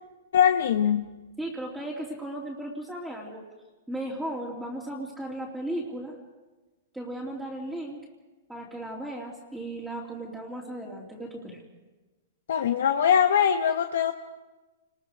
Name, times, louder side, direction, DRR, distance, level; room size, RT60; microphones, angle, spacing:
voice 1, 0.3-1.1 12.5-14.1, left 8 dB, 75° left, 7 dB, 1.0 m, -22 dB
voice 2, 1.4-3.4 3.9-6.2 6.9-8.0 8.5-11.6, right 1 dB, ahead, -5 dB, 2.8 m, -36 dB
29.0 x 21.0 x 5.1 m, 1.2 s
hypercardioid pair, 150°, 0 cm